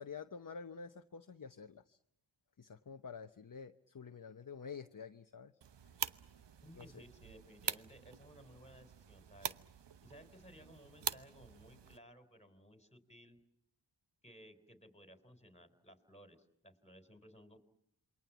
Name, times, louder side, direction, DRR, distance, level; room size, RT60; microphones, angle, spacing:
voice 1, 0.0-2.0 2.6-5.5 5.9-6.0 6.8-7.0, left 5 dB, 45° left, 8 dB, 1.0 m, -49 dB
sound 1, 5.6-12.0, right 7 dB, 60° right, 1.0 m, -45 dB
voice 2, 6.6-9.5 10.0-13.4 14.2-17.6, equal, 15° left, 9 dB, 4.1 m, -59 dB
28.0 x 23.0 x 7.1 m, 0.77 s
cardioid pair, 60°, 47 cm